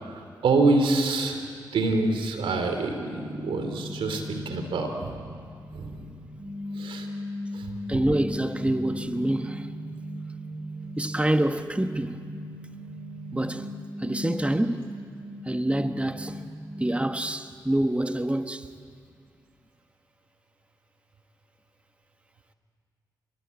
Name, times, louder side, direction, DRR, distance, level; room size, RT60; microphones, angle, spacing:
voice 1, 0.0-1.4 1.7-5.2 5.7-6.2 6.7-7.1 7.5-7.8, right 3 dB, 85° right, 3.0 m, -26 dB
sound 1, 3.2-17.1, left 1 dB, 35° right, 2.3 m, -38 dB
voice 2, 7.9-9.7 11.0-12.2 13.3-13.7 14.0-14.9 15.4-16.4 16.8-18.7, right 1 dB, 15° right, 1.3 m, -26 dB
27.5 x 22.0 x 8.4 m
supercardioid pair, 45°, 9 cm